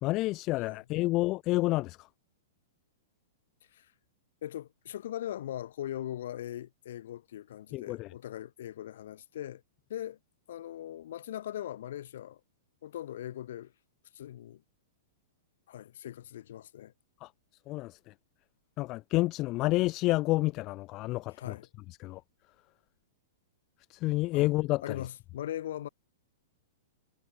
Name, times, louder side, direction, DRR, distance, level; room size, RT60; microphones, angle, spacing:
voice 1, 0.0-2.0 7.7-8.1 17.2-17.3 17.7-18.1 18.8-21.6 22.0-22.2 23.9-25.0, left 19 dB, 40° left, 1.8 m, -29 dB
voice 2, 4.4-9.6 9.9-10.2 10.5-12.4 12.8-13.7 14.1-14.6 15.7-16.9 21.3-21.7 24.3-24.5 24.8-25.9, left 11 dB, 65° left, 7.6 m, -40 dB
hypercardioid pair, 110°, 0 cm